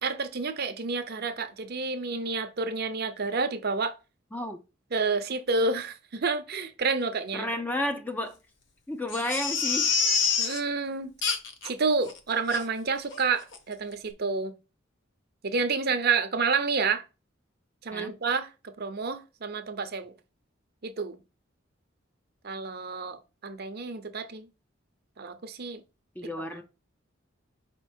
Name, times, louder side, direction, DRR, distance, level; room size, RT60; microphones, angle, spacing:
voice 1, 0.0-4.0 4.9-7.5 10.4-11.1 11.6-14.5 15.4-17.0 17.8-20.1 20.8-21.2 22.4-24.5 25.2-25.8, right 4 dB, 50° right, 0.8 m, -29 dB
voice 2, 4.3-4.6 7.3-8.4 8.9-9.9 17.9-18.1 26.2-26.6, left 1 dB, 10° left, 0.6 m, -31 dB
Crying sobbing, 9.1-10.6 11.2-11.7 12.1-12.2 12.5-12.6 13.1-13.3 13.5-13.6, left 5 dB, 65° left, 1.1 m, -27 dB
5.4 x 4.5 x 4.4 m
head